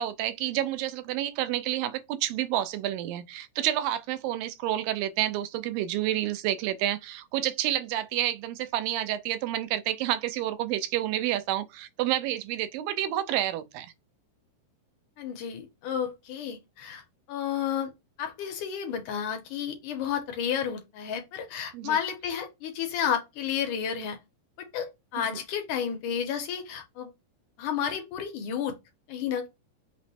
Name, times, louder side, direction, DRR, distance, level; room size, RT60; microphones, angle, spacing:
voice 1, 0.0-13.9 21.7-22.0 25.2-25.4, right 13 dB, 85° right, 2.3 m, -29 dB
voice 2, 15.2-17.0 17.3-17.9 18.2-24.2 24.6-27.1 27.6-28.7 29.1-29.5, left 8 dB, 75° left, 2.2 m, -31 dB
5.9 x 2.1 x 4.1 m
omnidirectional pair, 4.0 m